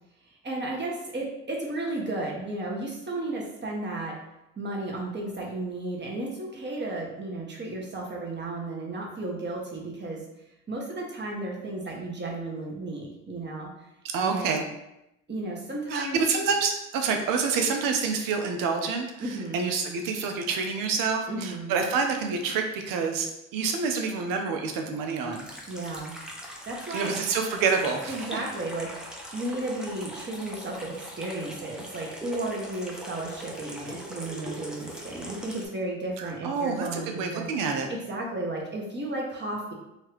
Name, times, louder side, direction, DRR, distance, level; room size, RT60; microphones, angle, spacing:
voice 1, 0.4-4.2 4.6-10.2 10.7-13.7 14.2-14.6 15.3-16.2 19.2-19.7 21.3-21.7 25.7-26.2 26.7-27.1 28.1-37.5 37.9-39.7, right 2 dB, 30° right, -2 dB, 1.1 m, -34 dB
voice 2, 14.0-14.6 15.9-25.5 26.9-28.4 36.2-37.9, right 5 dB, 70° right, 4 dB, 0.6 m, -28 dB
Water tap faucet / Sink (filling or washing), 25.3-35.7, equal, ahead, 0.7 m, -41 dB
2.9 x 2.4 x 3.1 m, 0.88 s
hypercardioid pair, 50°, 34 cm